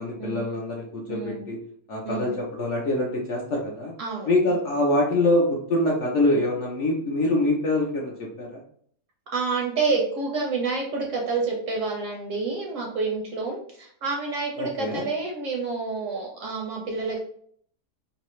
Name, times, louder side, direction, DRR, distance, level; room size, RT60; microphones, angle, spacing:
voice 1, 0.0-1.6 1.9-3.9 4.3-8.6 14.6-15.1, left 1 dB, 65° left, -2 dB, 0.7 m, -25 dB
voice 2, 1.1-1.5 2.0-2.3 4.0-4.3 9.3-17.2, right 4 dB, 65° right, 0 dB, 0.8 m, -28 dB
3.2 x 2.7 x 3.0 m, 0.62 s
omnidirectional pair, 1.7 m